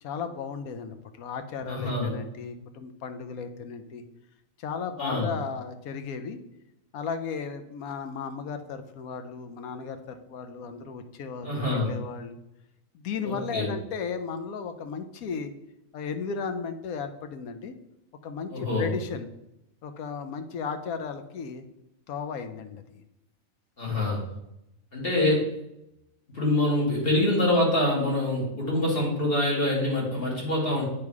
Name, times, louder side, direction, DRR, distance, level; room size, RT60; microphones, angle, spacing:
voice 1, 0.0-4.0 4.6-6.4 6.9-12.4 12.9-15.5 15.9-17.7 18.2-19.3 19.8-21.6 22.1-23.0, left 5 dB, 85° left, 8 dB, 1.2 m, -35 dB
voice 2, 1.7-2.1 5.0-5.3 11.4-11.9 13.2-13.7 18.5-18.9 23.8-24.2 24.9-25.4 26.3-30.8, left 1 dB, 40° left, -4 dB, 2.3 m, -25 dB
8.7 x 3.3 x 4.7 m, 0.86 s
omnidirectional pair, 1.5 m